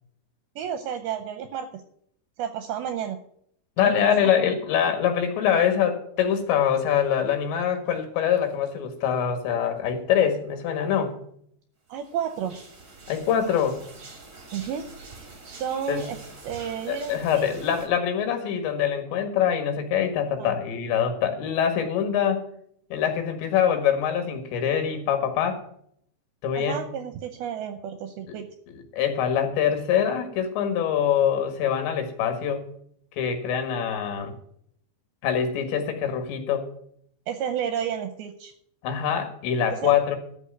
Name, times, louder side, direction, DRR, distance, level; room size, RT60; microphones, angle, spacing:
voice 1, 0.6-1.8 2.4-3.2 3.8-4.3 11.9-12.6 14.5-14.9 15.2-16.2 16.4-17.5 20.4-20.5 26.6-28.5 37.3-38.5 39.8-39.9, right 8 dB, 75° right, 8 dB, 2.4 m, -31 dB
voice 2, 3.8-11.1 13.1-13.8 15.9-16.1 16.9-22.4 22.9-25.6 26.4-26.8 28.3-28.4 28.9-32.6 33.2-34.3 35.2-36.6 38.8-40.2, left 8 dB, 85° left, 6 dB, 4.0 m, -24 dB
sound 1, 12.0-17.9, right 3 dB, 35° right, 1.5 m, -45 dB
13.0 x 5.2 x 9.0 m, 0.66 s
omnidirectional pair, 5.0 m